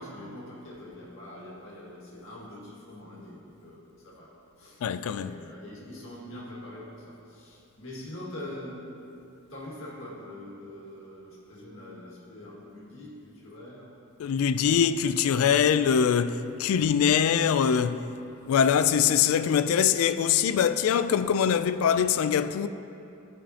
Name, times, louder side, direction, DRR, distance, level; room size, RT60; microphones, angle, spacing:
voice 1, 0.0-4.3 4.6-4.8 5.2-8.9 9.5-13.9, left 1 dB, 70° left, 1.9 m, -43 dB
voice 2, 4.8-5.4 14.2-18.1 18.5-22.7, left 8 dB, 85° left, 0.3 m, -23 dB
14.0 x 5.2 x 2.8 m
head